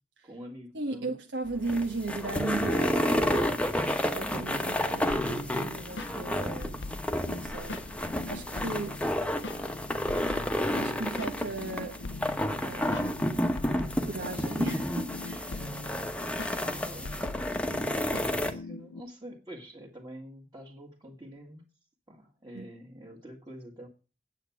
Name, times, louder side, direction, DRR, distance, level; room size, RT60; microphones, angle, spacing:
voice 1, 0.2-1.1 15.5-17.3 18.1-21.6 22.1-23.9, equal, 20° right, 1.9 m, -46 dB
voice 2, 0.7-3.6 4.1-6.7 7.3-7.8 8.3-9.0 10.8-12.0 12.6-13.4 14.0-15.6 22.5-22.7, right 3 dB, 80° right, 1.4 m, -36 dB
sound 1, 1.5-18.5, left 1 dB, 5° left, 1.0 m, -30 dB
sound 2, 5.1-19.0, left 2 dB, 85° left, 0.8 m, -42 dB
9.0 x 8.3 x 7.1 m
head